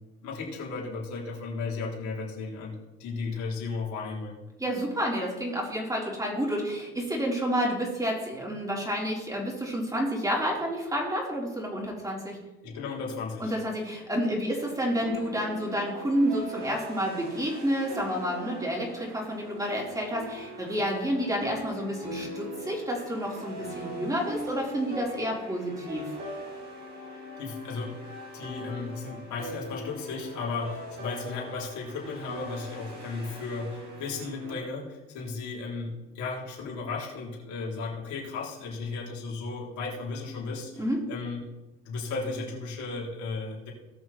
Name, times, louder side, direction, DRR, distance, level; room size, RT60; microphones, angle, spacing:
voice 1, 0.2-4.3 12.6-13.5 27.0-28.0 28.3-41.4 41.8-43.7, left 4 dB, 70° left, -3 dB, 4.2 m, -35 dB
voice 2, 4.6-12.4 13.4-26.0 40.8-41.0, equal, 10° right, -2 dB, 4.8 m, -30 dB
sound 1, 14.6-34.5, equal, 35° right, 5.0 m, -41 dB
18.5 x 6.2 x 4.5 m, 1.0 s
supercardioid pair, 80°, 30 cm